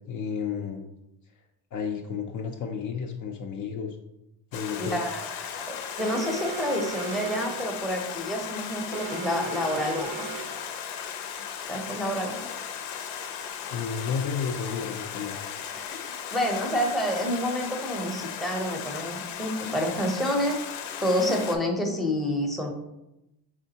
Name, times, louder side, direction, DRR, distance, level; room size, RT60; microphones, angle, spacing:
voice 1, 0.1-0.9 1.7-4.0 4.5-5.1 13.7-15.4, left 6 dB, 45° left, 3 dB, 0.4 m, -32 dB
Stream, 4.5-21.6, left 8 dB, 85° left, 0.7 m, -36 dB
voice 2, 4.8-10.3 11.7-12.5 15.9-20.6 21.0-22.7, equal, ahead, 0 dB, 0.6 m, -28 dB
Alarm, 6.0-7.7 8.9-10.7, right 7 dB, 45° right, 0.5 m, -38 dB
4.9 x 3.5 x 2.8 m, 0.91 s
cardioid pair, 110°, 46 cm